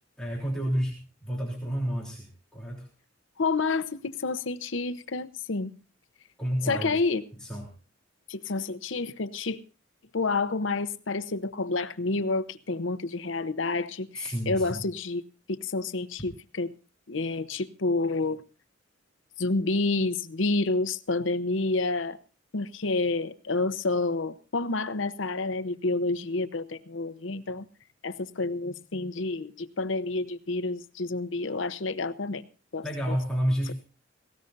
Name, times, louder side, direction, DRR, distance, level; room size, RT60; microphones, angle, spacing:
voice 1, 0.2-2.9 6.4-7.0 7.3-7.7 14.2-14.8 32.8-33.7, equal, 5° left, -4 dB, 3.4 m, -30 dB
voice 2, 3.4-5.7 6.7-7.2 8.3-9.6 10.1-15.2 15.5-16.7 17.1-18.4 19.4-22.2 22.5-27.6 28.0-32.4 32.7-33.2, left 3 dB, 75° left, 11 dB, 0.8 m, -29 dB
19.0 x 17.5 x 2.6 m, 0.34 s
head